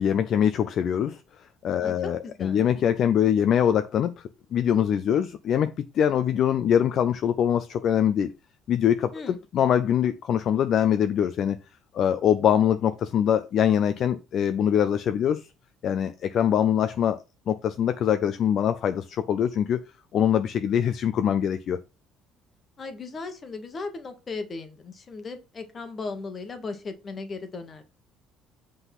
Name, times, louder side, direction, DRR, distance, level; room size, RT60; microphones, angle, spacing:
voice 1, 0.0-8.3 8.7-11.6 11.9-15.5 15.8-19.8 20.1-21.8, left 9 dB, 40° left, 0.5 m, -23 dB
voice 2, 1.8-2.6 9.1-9.4 22.8-27.8, left 3 dB, 25° left, 1.3 m, -37 dB
8.1 x 3.8 x 5.9 m
cardioid pair, 180°, 0 cm